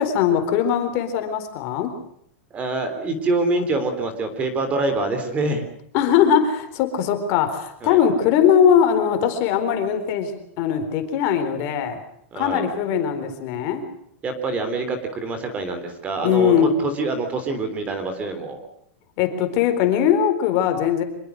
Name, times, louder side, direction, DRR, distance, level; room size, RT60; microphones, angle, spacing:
voice 1, 0.0-1.9 5.9-10.3 10.6-12.0 12.4-13.8 16.2-16.7 19.2-21.0, left 8 dB, 40° left, 7 dB, 4.1 m, -20 dB
voice 2, 2.5-5.6 7.8-8.0 12.3-12.6 14.2-16.5 17.0-18.6, right 2 dB, 20° right, 8 dB, 3.5 m, -25 dB
26.0 x 22.0 x 6.4 m, 0.71 s
supercardioid pair, 160°, 7 cm